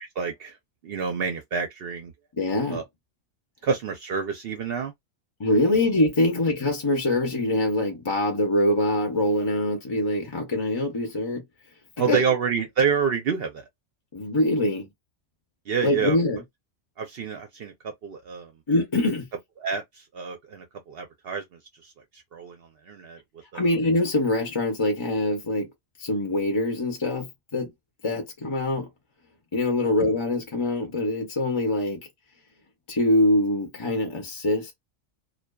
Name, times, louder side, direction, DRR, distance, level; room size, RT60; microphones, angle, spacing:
voice 1, 0.2-0.6 0.8-2.1 2.7-2.8 3.6-4.9 5.6-5.7 12.0-13.6 15.7-16.2 17.0-18.5 19.6-21.4 22.3-23.2 23.5-23.6, right 6 dB, 60° right, 0.7 m, -28 dB
voice 2, 2.4-2.8 5.4-11.4 12.1-12.2 14.1-14.9 15.8-16.4 18.7-19.3 23.5-25.7 26.0-27.7 28.0-28.9 29.5-32.0 32.9-34.7, left 1 dB, 30° left, 0.5 m, -24 dB
2.5 x 2.2 x 2.2 m
omnidirectional pair, 1.3 m